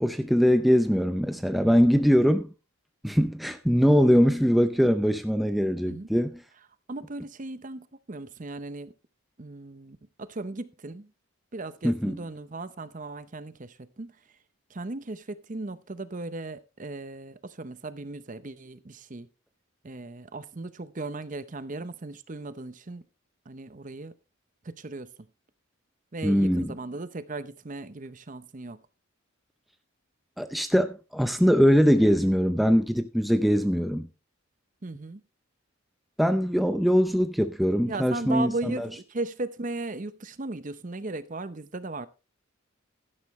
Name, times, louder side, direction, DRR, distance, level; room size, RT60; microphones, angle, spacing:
voice 1, 0.0-2.5 3.0-6.4 11.8-12.2 26.2-26.7 30.4-34.1 36.2-38.9, equal, ahead, 0.5 m, -22 dB
voice 2, 6.9-8.9 9.4-11.1 11.5-14.1 14.7-19.3 19.8-23.0 23.5-24.1 24.6-25.1 26.1-28.8 34.8-35.2 37.9-42.1, right 2 dB, 40° right, 0.7 m, -37 dB
12.0 x 11.0 x 3.1 m
head